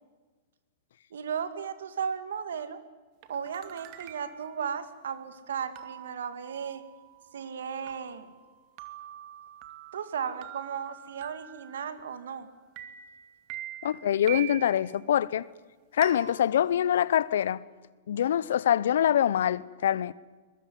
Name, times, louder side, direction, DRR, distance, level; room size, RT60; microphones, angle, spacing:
voice 1, 1.1-2.8 3.3-6.8 7.3-8.3 9.9-12.5, right 7 dB, 75° right, 2.3 m, -35 dB
sound 1, 3.2-4.5 5.8-12.4 12.8-14.9 16.0-17.3, right 13 dB, 45° right, 2.4 m, -45 dB
voice 2, 13.8-15.4 15.9-17.6 18.1-20.1, left 10 dB, 70° left, 0.8 m, -25 dB
22.5 x 21.5 x 9.5 m
hypercardioid pair, 110°, 0 cm